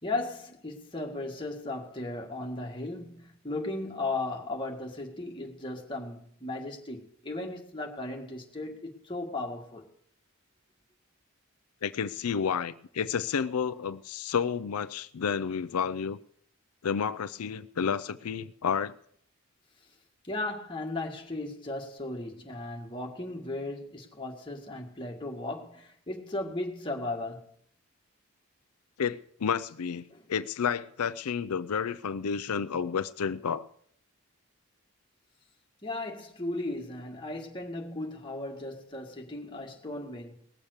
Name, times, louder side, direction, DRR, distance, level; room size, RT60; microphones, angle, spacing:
voice 1, 0.0-9.9 20.2-27.5 30.1-30.3 35.8-40.3, left 2 dB, 20° left, 1.9 m, -36 dB
voice 2, 11.8-16.2 16.8-18.9 29.0-30.0 30.3-33.6, left 6 dB, 90° left, 0.5 m, -30 dB
18.5 x 7.2 x 6.6 m
head